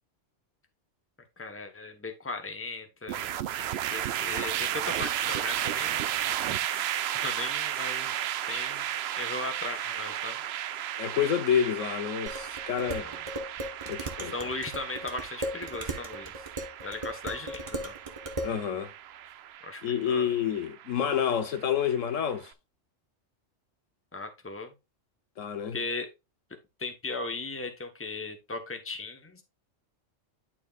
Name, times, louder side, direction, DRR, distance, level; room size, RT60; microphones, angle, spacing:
voice 1, 1.4-3.3 3.7-6.0 6.4-8.1 8.5-8.9 9.2-10.4 13.0-13.2 14.2-16.3 16.8-18.0 19.6-20.3 24.1-24.7 25.7-26.1 26.8-29.4, left 3 dB, 10° left, 1.0 m, -37 dB
sound 1, 3.1-22.3, right 11 dB, 65° right, 0.7 m, -34 dB
voice 2, 11.0-13.1 13.9-14.3 18.4-18.9 19.8-22.5 25.4-25.8, left 8 dB, 80° left, 1.3 m, -28 dB
Dishes pots and pans, 12.3-18.6, right 1 dB, 25° right, 1.3 m, -37 dB
11.5 x 4.8 x 2.4 m
omnidirectional pair, 1.3 m